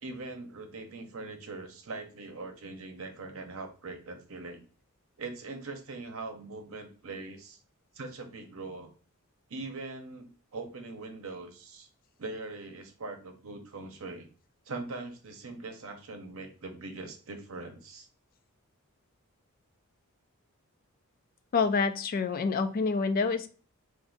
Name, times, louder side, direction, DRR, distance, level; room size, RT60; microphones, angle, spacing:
voice 1, 0.0-4.6 5.2-7.6 7.9-8.9 9.5-11.9 12.2-14.3 14.7-18.1, right 3 dB, 70° right, 5 dB, 0.8 m, -41 dB
voice 2, 21.5-23.5, left 4 dB, 40° left, 10 dB, 0.3 m, -27 dB
2.5 x 2.5 x 3.8 m, 0.38 s
head